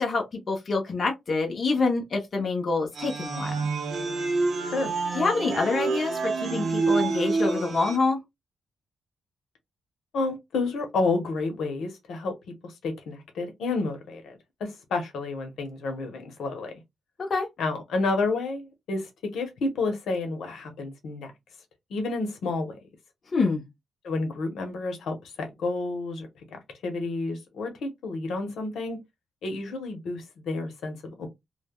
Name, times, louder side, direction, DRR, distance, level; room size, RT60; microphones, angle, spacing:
voice 1, 0.0-3.5 5.1-8.2 17.2-17.5 23.3-23.6, left 3 dB, 35° left, 0.7 m, -26 dB
sound 1, 2.9-8.0, right 4 dB, 55° right, 0.6 m, -27 dB
voice 2, 10.1-12.3 12.6-16.8 17.6-21.3 21.9-22.8 24.0-29.0 29.4-31.3, left 3 dB, 80° left, 0.9 m, -30 dB
3.2 x 2.1 x 2.2 m
wide cardioid pair, 170°, 0 cm